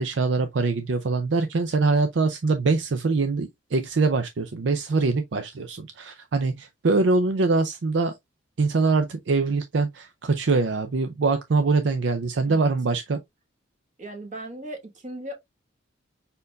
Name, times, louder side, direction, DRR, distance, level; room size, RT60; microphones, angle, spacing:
voice 1, 0.0-8.1 8.6-13.2, right 3 dB, 65° right, 0.5 m, -23 dB
voice 2, 14.0-15.3, right 1 dB, 40° right, 1.3 m, -37 dB
5.2 x 4.5 x 2.3 m
head